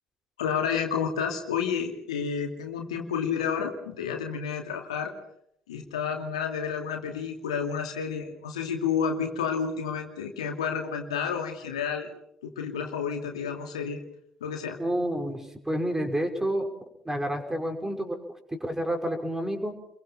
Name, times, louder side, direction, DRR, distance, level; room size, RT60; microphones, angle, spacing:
voice 1, 0.4-5.1 5.7-12.1 12.4-14.0 14.4-14.8, left 6 dB, 80° left, 3 dB, 2.5 m, -30 dB
voice 2, 14.8-16.7 17.1-18.2 18.5-19.7, right 1 dB, 15° right, 4 dB, 5.7 m, -29 dB
30.0 x 23.0 x 5.6 m, 0.72 s
figure-of-eight pair, 50°, 3 cm